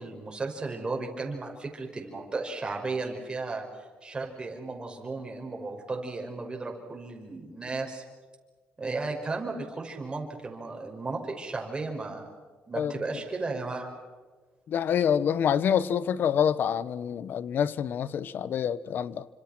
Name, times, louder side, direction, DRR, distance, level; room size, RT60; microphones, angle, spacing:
voice 1, 0.0-3.7 4.0-8.0 8.8-12.3 12.7-13.9, right 3 dB, 25° right, 5.9 m, -34 dB
voice 2, 14.7-19.3, left 8 dB, 60° left, 0.9 m, -26 dB
29.0 x 26.0 x 6.1 m
cardioid pair, 105°, 4 cm